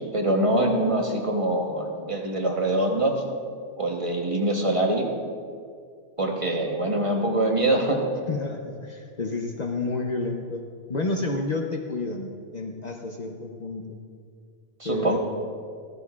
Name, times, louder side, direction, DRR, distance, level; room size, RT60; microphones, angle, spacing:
voice 1, 0.0-3.2 3.8-5.1 6.2-8.0 14.8-15.2, right 1 dB, 30° right, 1 dB, 1.0 m, -24 dB
voice 2, 8.3-10.6 10.9-13.9 14.8-15.2, left 2 dB, 45° left, 2 dB, 0.7 m, -30 dB
14.0 x 13.5 x 2.4 m, 2.2 s
omnidirectional pair, 1.1 m